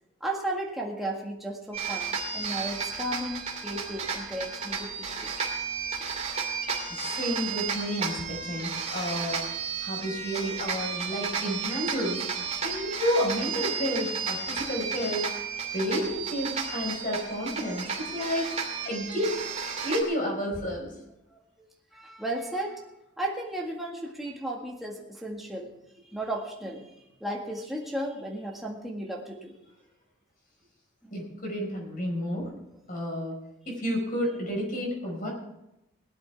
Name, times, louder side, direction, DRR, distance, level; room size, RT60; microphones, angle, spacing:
voice 1, 0.2-5.3 17.6-17.7 21.3-22.8 23.2-25.7 26.1-26.9 27.2-29.6 32.9-33.0, right 1 dB, ahead, -3 dB, 1.8 m, -35 dB
sound 1, 1.7-20.0, right 5 dB, 30° right, 2.7 m, -33 dB
voice 2, 6.9-9.4 9.8-15.3 15.7-18.5 18.8-19.4 19.8-20.9 31.1-32.5 32.9-33.4 33.6-35.3, equal, 40° left, 0 dB, 5.1 m, -31 dB
18.0 x 12.5 x 3.5 m, 0.87 s
head